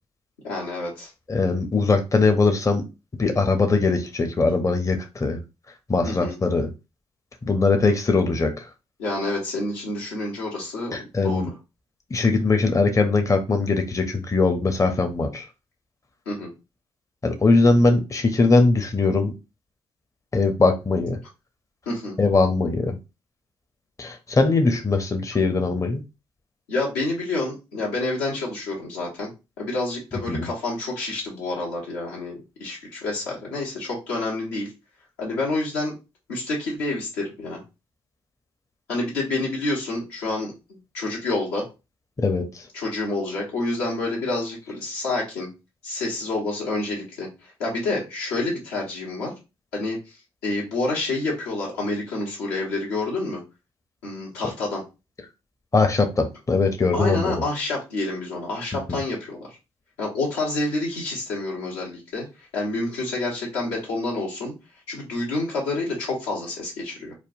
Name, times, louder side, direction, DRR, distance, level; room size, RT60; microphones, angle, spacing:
voice 1, 0.4-1.1 6.0-6.4 9.0-11.4 16.3-16.5 21.8-22.2 26.7-29.3 29.6-32.3 32.6-34.7 35.2-35.9 36.3-37.6 38.9-41.7 42.7-45.5 45.8-49.3 49.7-53.4 54.0-54.8 56.9-59.5 60.0-64.5 64.9-67.1, left 2 dB, 85° left, -4 dB, 1.1 m, -28 dB
voice 2, 1.3-2.8 3.2-5.4 5.9-6.7 7.4-8.7 10.9-11.5 12.1-15.4 17.2-19.3 20.3-21.2 22.2-22.9 24.0-26.0 30.3-30.5 42.2-42.6 55.7-57.3 58.9-59.0, left 3 dB, 25° left, 5 dB, 0.6 m, -21 dB
3.3 x 2.2 x 2.6 m, 0.27 s
hypercardioid pair, 40°, 13 cm